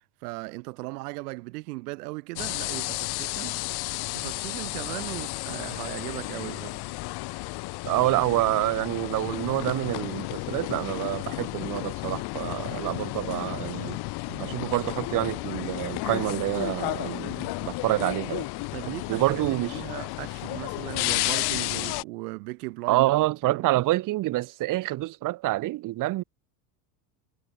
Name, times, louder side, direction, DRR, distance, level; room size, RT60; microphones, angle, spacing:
voice 1, 0.2-3.6 4.1-6.8 14.3-14.6 18.7-23.1 23.4-23.8, right 24 dB, 80° right, 1.5 m, -37 dB
sound 1, 2.4-22.0, left 22 dB, 55° left, 1.1 m, -32 dB
voice 2, 7.8-14.0 14.4-18.5 19.1-19.8 22.9-26.2, right 17 dB, 45° right, 0.8 m, -27 dB
supercardioid pair, 105°, 45 cm